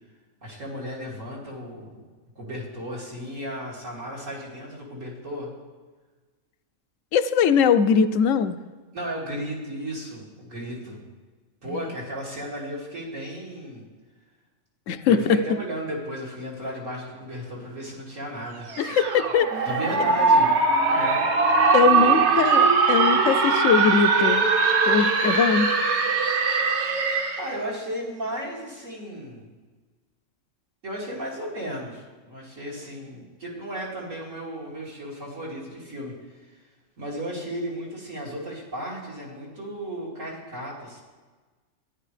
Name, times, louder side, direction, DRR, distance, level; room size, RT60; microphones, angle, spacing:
voice 1, 0.4-2.0 2.4-5.5 8.9-11.0 11.6-13.8 15.0-18.7 19.7-20.5 20.9-21.3 21.7-22.2 27.4-29.5 30.8-36.2 36.5-36.6 37.0-41.0, equal, 90° right, -4 dB, 3.0 m, -34 dB
voice 2, 7.1-8.6 11.7-11.9 14.9-15.2 18.8-19.5 21.7-24.5 24.9-25.7, left 7 dB, 80° left, 11 dB, 1.0 m, -21 dB
sound 1, 18.7-27.5, right 4 dB, 65° right, 1.2 m, -21 dB
13.0 x 10.0 x 3.3 m, 1.3 s
omnidirectional pair, 1.3 m